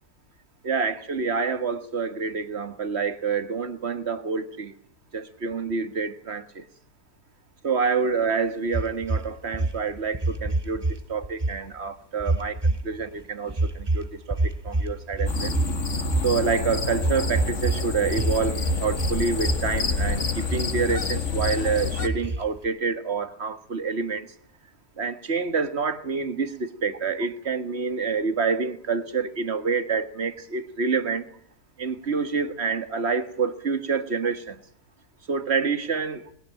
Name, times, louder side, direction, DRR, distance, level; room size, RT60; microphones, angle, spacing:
voice 1, 0.6-4.7 5.1-6.6 7.6-15.5 16.2-24.3 25.0-31.3 31.8-34.6 35.3-36.3, right 5 dB, 40° right, 1.7 m, -27 dB
sound 1, 8.7-11.0 11.2-11.6 12.2-13.1 13.5-16.4 17.0-17.8 18.1-19.2 19.4-20.1 20.4-21.0 21.4-21.5 22.1-22.7, right 2 dB, 20° right, 1.0 m, -26 dB
sound 2, 15.3-22.1, left 4 dB, 50° left, 1.9 m, -28 dB
21.0 x 18.0 x 8.9 m
omnidirectional pair, 1.7 m